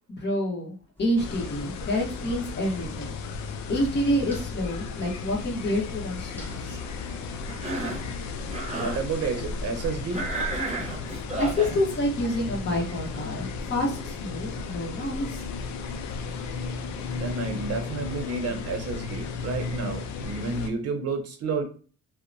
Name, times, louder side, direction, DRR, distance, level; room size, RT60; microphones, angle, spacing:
voice 1, 0.2-3.1 3.7-6.8 11.4-15.4, equal, 35° left, -3 dB, 1.0 m, -28 dB
sound 1, 1.0-17.3, equal, 5° left, 0.9 m, -45 dB
sound 2, 1.2-20.7, left 5 dB, 70° left, 0.4 m, -35 dB
Cough, 7.5-8.1 8.5-9.0 10.1-11.7, right 3 dB, 20° right, 0.9 m, -32 dB
voice 2, 8.7-10.2 17.1-21.6, right 4 dB, 55° right, 6 dB, 0.7 m, -31 dB
2.8 x 2.1 x 2.5 m, 0.39 s
cardioid pair, 90°, 30 cm